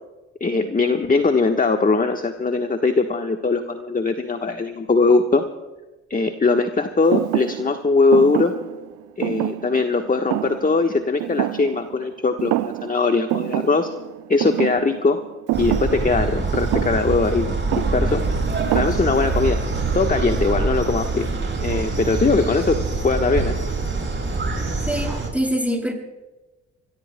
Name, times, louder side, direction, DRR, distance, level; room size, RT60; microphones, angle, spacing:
voice 1, 0.4-5.4 6.1-8.5 9.2-13.9 14.3-15.2 15.6-18.2 18.7-19.6 19.9-21.3 21.6-23.6, left 3 dB, 25° left, 5 dB, 1.3 m, -20 dB
Thump thud, 7.1-12.1 12.4-13.0 13.3-19.4, right 17 dB, 65° right, 0.6 m, -27 dB
sound 1, 15.5-25.3, right 3 dB, 35° right, 6.4 m, -24 dB
voice 2, 24.9-25.9, equal, 5° right, 0 dB, 7.7 m, -24 dB
25.5 x 22.5 x 2.3 m, 1.1 s
hypercardioid pair, 50°, 34 cm